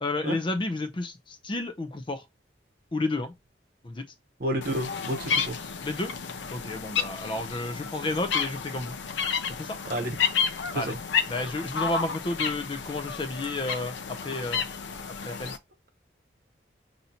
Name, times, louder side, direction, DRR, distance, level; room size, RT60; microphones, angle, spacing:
voice 1, 0.0-2.2 2.9-3.3 3.8-4.0 5.8-6.1 6.5-9.0 9.6-9.8 10.7-11.0 11.3-14.6 15.2-15.5, left 2 dB, 25° left, 0.4 m, -31 dB
voice 2, 4.4-5.6 9.9-10.2 10.7-11.0, right 1 dB, 55° right, 0.9 m, -30 dB
sound 1, 4.6-15.6, left 6 dB, 80° left, 0.5 m, -31 dB
5.4 x 2.7 x 2.8 m
head